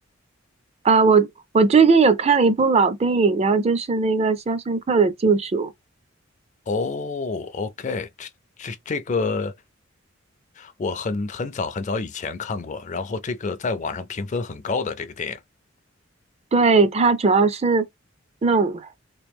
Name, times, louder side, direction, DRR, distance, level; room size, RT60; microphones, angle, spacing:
voice 1, 0.8-1.3 1.5-5.7 16.5-17.9 18.4-18.9, right 4 dB, 30° right, 0.4 m, -18 dB
voice 2, 6.7-8.3 8.6-9.5 10.6-15.4, left 4 dB, 35° left, 0.4 m, -28 dB
3.2 x 3.0 x 3.5 m
head